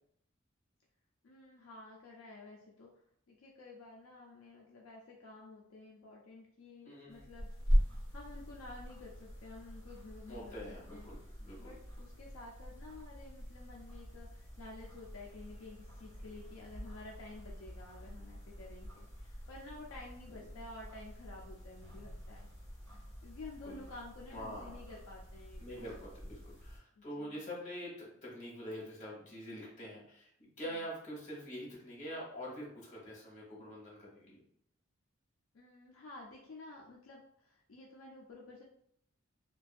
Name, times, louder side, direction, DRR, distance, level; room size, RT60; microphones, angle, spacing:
voice 1, 1.2-2.9 3.3-7.5 8.1-11.1 11.6-22.5 23.2-25.9 27.0-27.4 30.6-30.8 35.5-38.6, left 2 dB, 75° left, -2 dB, 0.4 m, -51 dB
voice 2, 6.8-7.2 10.3-11.7 23.6-23.8 24.3-24.8 25.6-30.3 30.6-34.4, equal, 35° left, -4 dB, 1.0 m, -45 dB
sound 1, 7.1-26.8, equal, 20° left, 1.5 m, -41 dB
2.5 x 2.2 x 2.4 m, 0.69 s
head